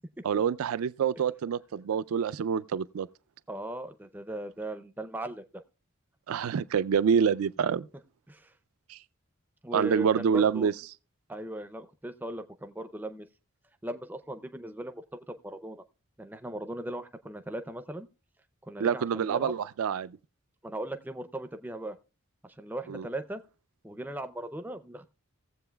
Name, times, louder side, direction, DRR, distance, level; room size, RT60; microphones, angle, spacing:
voice 1, 0.2-3.1 6.3-7.9 8.9-9.0 9.7-10.7 18.8-20.1 22.9-23.1, right 7 dB, 80° right, 0.4 m, -27 dB
voice 2, 3.5-5.6 8.3-8.5 9.6-10.7 11.3-13.3 13.8-15.8 16.2-18.1 18.7-19.5 20.6-22.0 22.4-23.4 23.8-25.1, right 1 dB, 10° right, 0.4 m, -38 dB
18.5 x 7.6 x 2.2 m
head